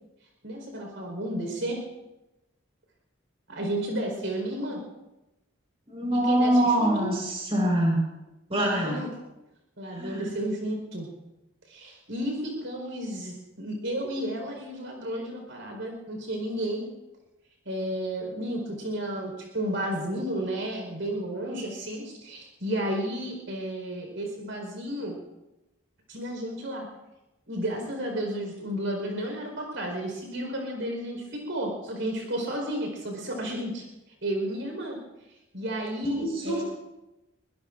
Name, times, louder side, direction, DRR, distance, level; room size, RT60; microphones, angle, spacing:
voice 1, 0.4-1.8 3.5-4.8 6.1-7.1 8.6-9.1 9.8-11.1 11.7-16.8 17.6-25.1 26.1-26.9 27.5-33.9 34.2-35.0 35.5-36.6, right 1 dB, 75° right, 1 dB, 4.6 m, -32 dB
voice 2, 5.9-8.0 8.5-9.0 9.9-10.3 36.0-36.6, right 1 dB, 30° right, -1 dB, 4.7 m, -24 dB
23.0 x 20.5 x 2.6 m, 0.98 s
head